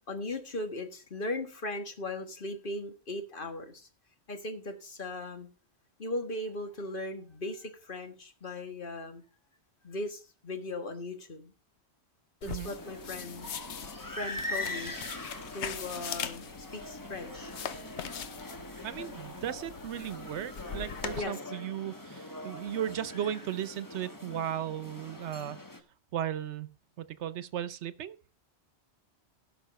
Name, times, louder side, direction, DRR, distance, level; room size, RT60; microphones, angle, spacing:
voice 1, 0.1-3.9 4.3-5.5 6.0-9.2 9.8-11.5 12.4-13.5 14.1-15.0 15.5-17.5 21.2-21.4, left 2 dB, 50° left, 1.7 m, -38 dB
sound 1, 12.4-21.2, left 7 dB, 85° left, 1.1 m, -41 dB
sound 2, 12.6-25.8, left 1 dB, 20° left, 1.2 m, -42 dB
voice 2, 18.8-25.6 26.1-28.2, right 10 dB, 90° right, 1.0 m, -36 dB
16.0 x 6.0 x 4.2 m
omnidirectional pair, 1.1 m